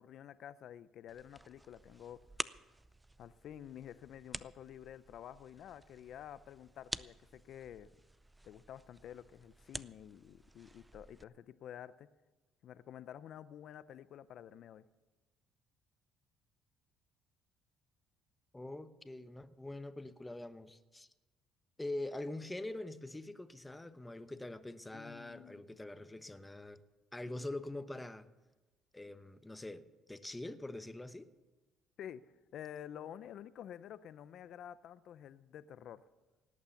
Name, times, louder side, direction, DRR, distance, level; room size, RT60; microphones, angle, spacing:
voice 1, 0.0-2.2 3.2-7.9 8.4-12.1 12.6-14.8 24.9-25.6 27.3-27.5 32.0-32.2 32.5-36.0, left 10 dB, 65° left, 15 dB, 0.6 m, -50 dB
sound 1, 1.1-11.2, right 1 dB, 10° right, 0.5 m, -49 dB
voice 2, 18.5-21.1 21.8-26.8 27.1-28.3 28.9-31.3, left 2 dB, 10° left, 11 dB, 0.9 m, -44 dB
18.0 x 8.7 x 7.1 m, 1.1 s
cardioid pair, 90°, 0 cm